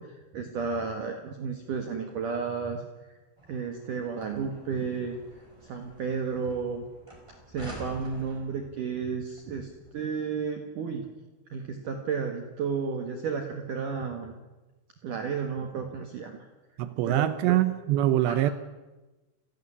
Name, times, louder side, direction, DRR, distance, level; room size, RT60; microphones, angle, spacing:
voice 1, 0.0-2.8 3.5-5.2 5.6-6.9 7.5-11.1 11.5-14.4 15.0-16.4 17.0-17.6 18.3-18.5, right 5 dB, 55° right, 5 dB, 2.6 m, -32 dB
sound 1, 3.4-10.0, equal, 5° right, 5.0 m, -49 dB
voice 2, 16.8-18.5, right 13 dB, 75° right, 13 dB, 2.8 m, -24 dB
29.0 x 12.0 x 9.9 m, 1.1 s
omnidirectional pair, 5.4 m